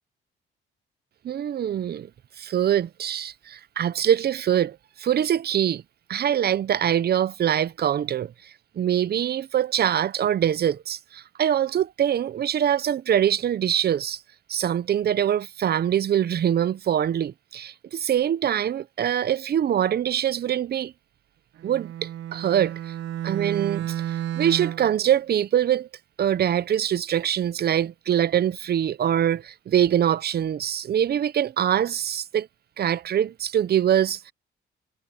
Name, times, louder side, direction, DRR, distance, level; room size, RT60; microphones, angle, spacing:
voice 1, 1.2-2.1 2.4-5.8 6.1-8.3 8.8-14.2 14.5-20.9 21.6-21.9 22.3-22.7 23.2-23.9 24.3-25.9 26.2-32.5 32.8-34.3, right 10 dB, 55° right, 0.8 m, -23 dB
Bowed string instrument, 21.6-25.0, right 11 dB, 80° right, 1.5 m, -31 dB
cardioid pair, 90°, 20 cm